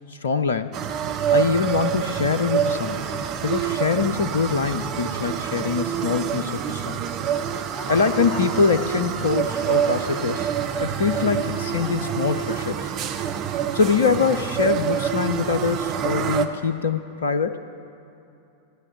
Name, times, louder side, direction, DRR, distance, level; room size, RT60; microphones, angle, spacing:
voice 1, 0.2-0.7 1.3-3.1 3.4-6.9 7.9-10.5 10.8-12.8 13.7-17.6, left 5 dB, 65° left, 11 dB, 0.5 m, -23 dB
sound 1, 0.7-16.5, right 9 dB, 35° right, 0.9 m, -26 dB
Laughter, 7.7-16.0, left 2 dB, 30° left, 2.2 m, -42 dB
15.5 x 9.8 x 8.3 m, 2.7 s
figure-of-eight pair, 90°, 0 cm